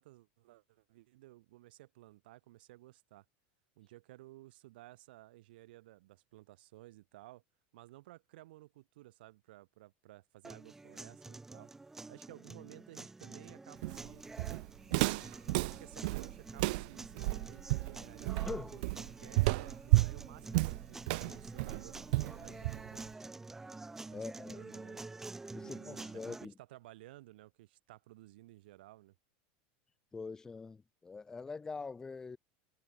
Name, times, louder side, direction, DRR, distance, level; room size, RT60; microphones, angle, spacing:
voice 1, 0.0-3.2 3.8-7.4 7.7-11.7 12.1-14.2 15.5-18.5 18.7-23.2 24.1-25.0 25.6-29.1, right 17 dB, 85° right, 5.3 m, -56 dB
sound 1, 10.4-26.5, right 3 dB, 5° right, 1.1 m, -48 dB
Walk footsteps, 13.8-23.1, right 24 dB, 65° right, 1.1 m, -32 dB
voice 2, 18.5-18.8 24.1-24.6 25.5-26.5 30.1-32.4, left 4 dB, 10° left, 7.1 m, -44 dB
supercardioid pair, 170°, 5 cm